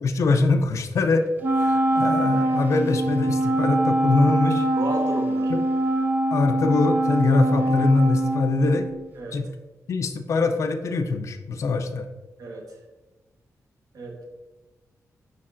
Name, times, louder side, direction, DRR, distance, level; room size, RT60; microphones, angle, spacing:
voice 1, 0.0-1.3 1.5-4.7 5.5-5.6 6.3-8.9 9.3-9.5 9.9-12.1, left 3 dB, 55° left, 5 dB, 0.4 m, -23 dB
Wind instrument woodwind instrument, 1.4-9.1, right 1 dB, 30° right, 0.6 m, -23 dB
voice 2, 4.8-5.5 9.2-9.4 12.4-12.8 13.9-14.3, right 2 dB, 85° right, 0 dB, 1.2 m, -33 dB
8.4 x 4.5 x 2.5 m, 1.2 s
wide cardioid pair, 170°, 6 cm